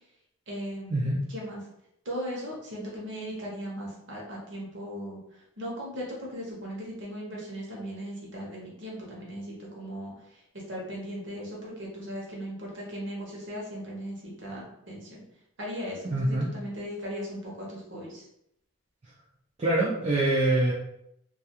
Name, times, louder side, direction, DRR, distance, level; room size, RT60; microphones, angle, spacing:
voice 1, 0.5-1.6 2.0-5.2 5.6-10.1 10.7-15.2 15.6-18.2, equal, 55° right, -3 dB, 0.8 m, -38 dB
voice 2, 16.0-16.5 19.6-20.7, right 2 dB, 30° right, -6 dB, 0.4 m, -24 dB
2.3 x 2.3 x 2.8 m, 0.78 s
head